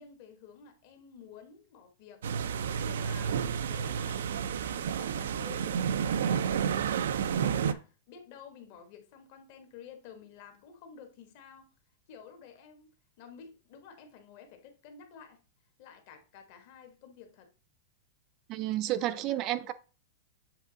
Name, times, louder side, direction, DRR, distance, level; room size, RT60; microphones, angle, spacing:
voice 1, 0.0-2.5 2.8-3.4 3.7-11.7 12.1-12.9 13.2-15.4 15.8-17.5 18.9-19.5, left 7 dB, 40° left, 1.3 m, -52 dB
sound 1, 2.2-7.7, right 7 dB, 90° right, 0.5 m, -30 dB
voice 2, 18.5-19.7, right 14 dB, 30° right, 0.4 m, -31 dB
7.4 x 3.5 x 3.9 m
supercardioid pair, 170°, 0 cm